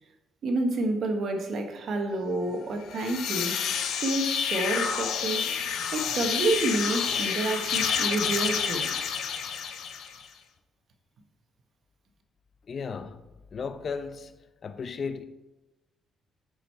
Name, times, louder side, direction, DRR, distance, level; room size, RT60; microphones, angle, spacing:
voice 1, 0.4-3.6 4.0-5.5 5.9-8.9, right 2 dB, 60° right, 1.2 m, -29 dB
sound 1, 2.8-10.3, left 7 dB, 75° left, 0.8 m, -29 dB
voice 2, 12.7-13.2 13.5-14.3 14.6-15.2, left 5 dB, 45° left, 0.6 m, -34 dB
9.9 x 5.0 x 4.4 m
cardioid pair, 90°, 0 cm